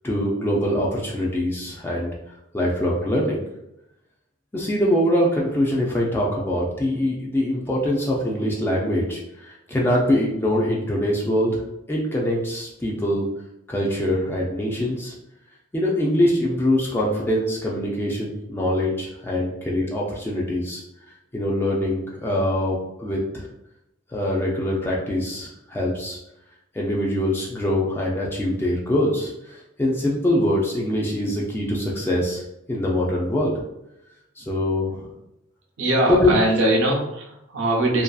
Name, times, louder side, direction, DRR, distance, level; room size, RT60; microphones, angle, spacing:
voice 1, 0.0-2.1 2.5-3.4 4.5-11.6 11.9-13.3 13.7-15.1 15.7-20.8 21.3-23.5 24.1-26.2 26.7-32.4 32.7-33.5 34.4-35.1 36.1-36.4, left 1 dB, 10° left, -3 dB, 0.3 m, -23 dB
voice 2, 35.8-38.0, right 1 dB, 70° right, -1 dB, 0.5 m, -21 dB
2.6 x 2.3 x 2.3 m, 0.84 s
head